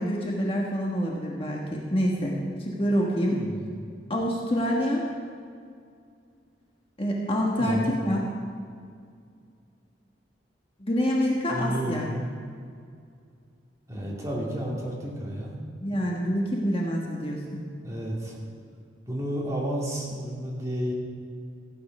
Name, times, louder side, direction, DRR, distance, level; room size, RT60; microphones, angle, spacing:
voice 1, 0.0-3.4 4.1-5.0 7.0-8.2 10.8-12.1 15.8-17.6, equal, 30° left, -2 dB, 1.4 m, -26 dB
voice 2, 3.3-3.9 7.6-7.9 11.5-12.2 13.9-15.6 17.8-18.4 19.1-20.9, equal, 15° right, -4 dB, 2.5 m, -31 dB
15.0 x 9.1 x 5.4 m, 2.2 s
head